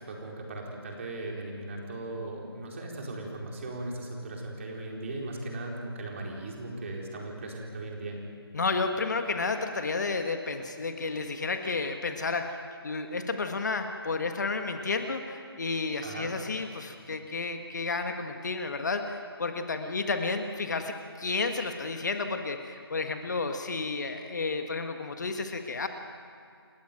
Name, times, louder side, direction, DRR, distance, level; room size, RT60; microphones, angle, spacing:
voice 1, 0.0-8.2 16.0-16.3, right 2 dB, 30° right, -1 dB, 4.4 m, -38 dB
voice 2, 8.5-25.9, left 3 dB, 45° left, 6 dB, 1.6 m, -31 dB
29.5 x 15.5 x 9.1 m, 2.4 s
figure-of-eight pair, 160°, 13 cm